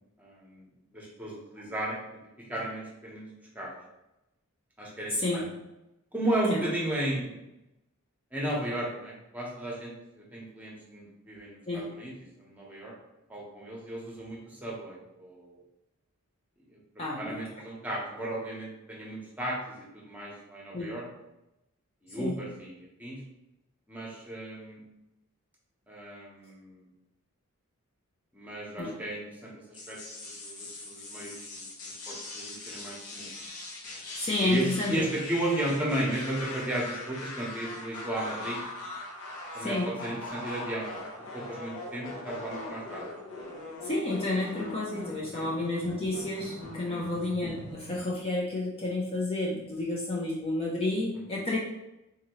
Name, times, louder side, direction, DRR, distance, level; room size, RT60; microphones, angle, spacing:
voice 1, 0.2-0.6 0.9-2.0 2.5-3.3 3.5-3.7 4.8-5.5 6.1-7.4 8.3-12.1 12.4-12.9 13.3-15.6 16.7-16.8 17.2-21.1 22.0-23.2 23.9-24.8 25.9-26.9 28.3-31.6 32.1-33.3 34.4-38.6 39.5-39.7 40.0-41.0 41.3-43.0 45.3-45.5 46.8-47.1 51.3-51.4, right 1 dB, 5° right, -4 dB, 0.9 m, -34 dB
voice 2, 5.1-5.5 6.5-6.7 11.7-11.9 17.0-17.4 20.7-20.9 22.2-22.4 28.8-29.0 34.1-35.0 39.5-39.9 43.8-51.6, left 2 dB, 25° left, -4 dB, 0.5 m, -30 dB
sound 1, 29.7-48.2, left 2 dB, 80° left, 0.8 m, -41 dB
3.7 x 2.9 x 3.0 m, 0.91 s
head